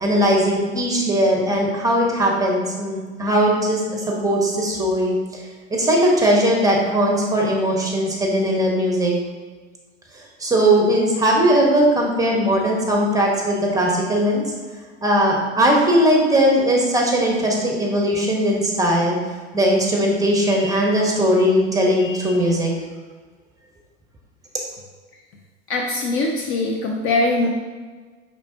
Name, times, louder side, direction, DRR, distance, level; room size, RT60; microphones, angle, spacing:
voice 1, 0.0-5.2 5.7-9.1 10.1-14.4 15.0-19.2 19.5-22.7, equal, 10° right, -1 dB, 1.0 m, -19 dB
voice 2, 25.7-27.5, left 2 dB, 35° left, 1 dB, 0.5 m, -21 dB
5.0 x 3.6 x 2.7 m, 1.4 s
hypercardioid pair, 85°, 36 cm